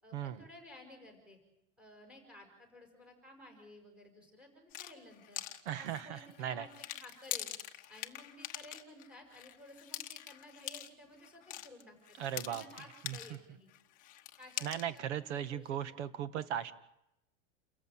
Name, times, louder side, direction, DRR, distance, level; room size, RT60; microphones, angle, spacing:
voice 1, 0.0-1.4 1.8-5.4 5.8-7.5 7.9-13.7 14.4-15.1 15.3-16.1, left 1 dB, 5° right, 2 dB, 6.2 m, -55 dB
sound 1, 4.7-13.4 13.7-15.0, left 13 dB, 20° left, 1.2 m, -44 dB
voice 2, 5.7-6.7 12.2-12.6 13.0-13.2 14.6-16.7, right 10 dB, 65° right, 12 dB, 2.1 m, -37 dB
29.0 x 15.0 x 9.3 m, 0.83 s
supercardioid pair, 175°, 37 cm